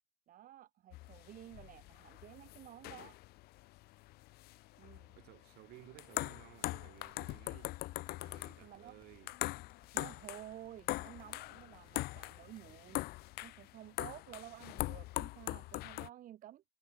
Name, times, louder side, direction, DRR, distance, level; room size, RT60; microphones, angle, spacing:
voice 1, 0.3-3.2 4.8-5.1 8.6-9.0 9.9-13.1 13.4-16.6, right 12 dB, 60° right, 0.9 m, -52 dB
sound 1, 0.9-16.1, left 19 dB, 80° left, 0.7 m, -42 dB
voice 2, 5.1-7.8 8.2-9.3, right 19 dB, 85° right, 1.8 m, -57 dB
sound 2, 6.8-12.7, left 5 dB, 30° left, 2.3 m, -65 dB
cardioid pair, 90°, 16 cm